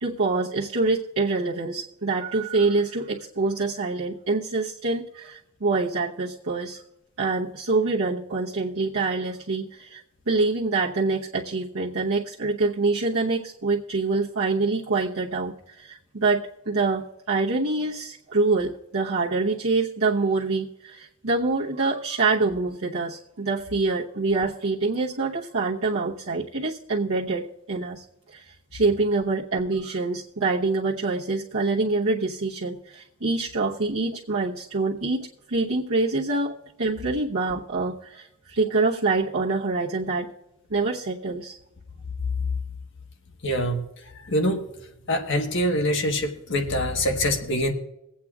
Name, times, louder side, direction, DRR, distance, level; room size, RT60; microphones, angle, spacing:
voice 1, 0.0-6.8 7.2-36.5 36.8-40.3 40.7-41.6, right 3 dB, 80° right, -7 dB, 1.0 m, -25 dB
voice 2, 43.4-43.8 44.1-44.7 45.1-47.7, left 1 dB, 60° left, 4 dB, 1.3 m, -24 dB
23.0 x 8.4 x 2.4 m, 0.87 s
head